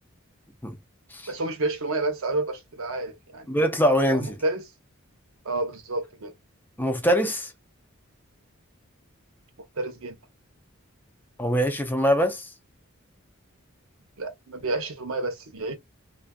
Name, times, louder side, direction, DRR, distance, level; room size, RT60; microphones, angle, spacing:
voice 1, 1.3-3.6 4.1-4.6 5.4-6.3 9.8-10.2 14.2-15.7, right 2 dB, 80° right, 0.8 m, -30 dB
voice 2, 3.5-4.4 6.8-7.5 11.4-12.5, equal, 10° left, 0.5 m, -23 dB
2.5 x 2.3 x 2.3 m
head